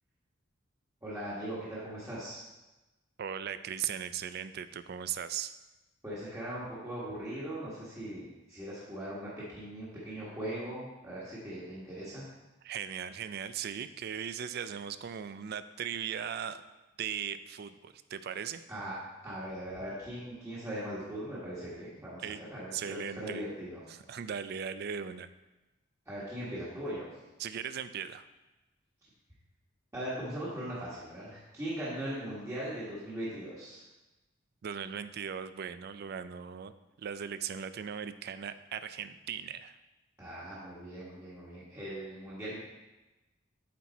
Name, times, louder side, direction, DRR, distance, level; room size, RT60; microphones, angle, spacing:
voice 1, 1.0-2.4 6.0-12.2 18.7-19.0 19.2-23.8 26.1-27.1 29.9-33.8 40.2-42.6, right 1 dB, 15° right, -9 dB, 1.4 m, -39 dB
voice 2, 3.2-5.5 12.6-16.6 17.0-18.6 22.2-22.4 22.7-23.5 23.9-25.3 27.4-28.3 34.6-36.7 37.0-39.8, right 8 dB, 55° right, 12 dB, 0.3 m, -38 dB
8.6 x 4.4 x 4.1 m, 1.1 s
head